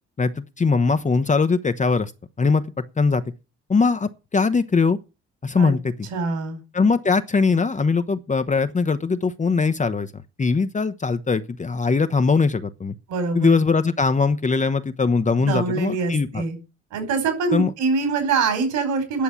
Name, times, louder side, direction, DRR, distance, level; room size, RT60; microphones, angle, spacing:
voice 1, 0.2-2.1 2.4-2.6 3.0-3.2 3.7-5.0 5.4-6.1 6.7-10.1 10.4-12.9 13.3-16.4 17.5-17.7, left 4 dB, 20° left, 1.0 m, -21 dB
voice 2, 6.1-6.6 13.1-13.6 15.4-16.6 16.9-19.2, right 4 dB, 60° right, 5.2 m, -24 dB
10.5 x 6.9 x 8.7 m
figure-of-eight pair, 50°, 33 cm